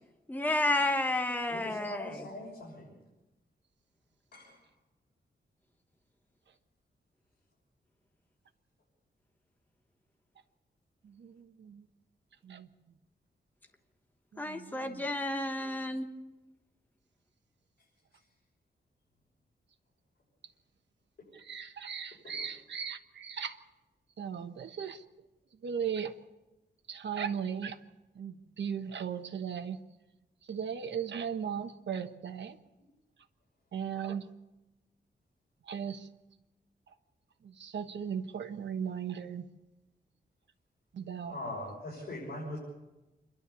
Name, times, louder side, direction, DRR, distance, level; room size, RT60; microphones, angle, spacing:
voice 1, 0.3-2.3 14.4-16.1, left 1 dB, 10° left, 5 dB, 1.1 m, -31 dB
voice 2, 1.5-2.9 4.3-4.5 22.2-22.5 41.3-42.6, left 1 dB, 60° left, -5 dB, 6.4 m, -41 dB
voice 3, 11.2-11.8 12.4-12.7 14.3-15.0 21.3-23.6 24.2-25.0 25.6-26.1 26.9-27.8 28.2-29.8 30.5-32.6 33.7-34.2 35.7-36.1 37.6-39.4 40.9-41.4, right 7 dB, 85° right, 7 dB, 1.2 m, -37 dB
27.0 x 12.0 x 8.4 m, 1.0 s
wide cardioid pair, 170°, 18 cm